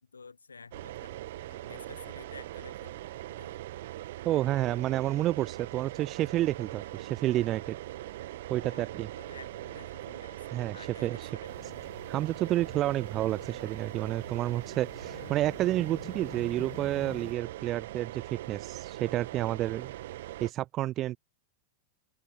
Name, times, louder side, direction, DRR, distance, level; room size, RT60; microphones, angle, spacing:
voice 1, 0.0-3.0 3.3-3.6 8.6-11.8 15.0-15.4, left 4 dB, 75° left, 3.3 m, -51 dB
sound 1, 0.7-20.5, right 15 dB, 55° right, 1.5 m, -41 dB
voice 2, 4.3-7.8 8.5-9.1 10.5-10.8 11.0-11.2 12.1-19.9 20.4-21.2, right 14 dB, 35° right, 0.3 m, -30 dB
sound 2, 11.5-17.3, left 24 dB, 40° left, 3.0 m, -50 dB
open air
figure-of-eight pair, 90°, 0 cm